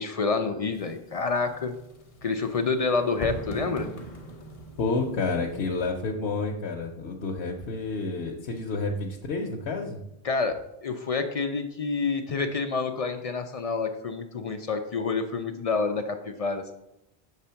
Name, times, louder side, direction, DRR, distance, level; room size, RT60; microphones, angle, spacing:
voice 1, 0.0-1.7 2.2-3.9 10.2-16.7, left 4 dB, 50° left, 7 dB, 0.4 m, -28 dB
sound 1, 0.7-5.9, right 1 dB, 35° left, 0.9 m, -41 dB
voice 2, 4.8-10.0, left 3 dB, 90° left, 1 dB, 1.0 m, -29 dB
6.8 x 3.4 x 5.6 m, 0.85 s
omnidirectional pair, 1.0 m